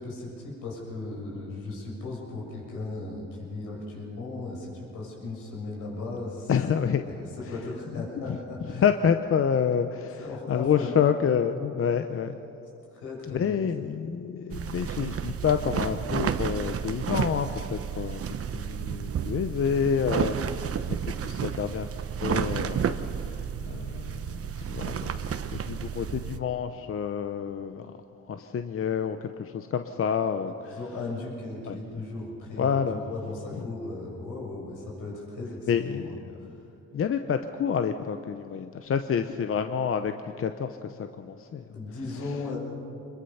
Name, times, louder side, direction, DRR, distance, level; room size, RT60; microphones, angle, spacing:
voice 1, 0.0-6.5 7.0-8.8 10.2-11.0 12.9-13.5 30.5-35.7 36.4-36.6 41.7-42.6, left 3 dB, 90° left, -2 dB, 6.7 m, -37 dB
voice 2, 6.5-7.0 7.4-7.5 7.9-8.0 8.3-8.4 8.7-12.4 13.3-18.2 18.5-30.8 31.7-31.8 32.6-33.0 33.5-33.6 35.7-36.6 36.9-41.6, left 7 dB, 45° left, 8 dB, 0.9 m, -28 dB
sound 1, 14.5-26.4, right 7 dB, 50° right, 1.0 m, -31 dB
25.5 x 22.0 x 5.8 m, 2.9 s
cardioid pair, 90°, 30 cm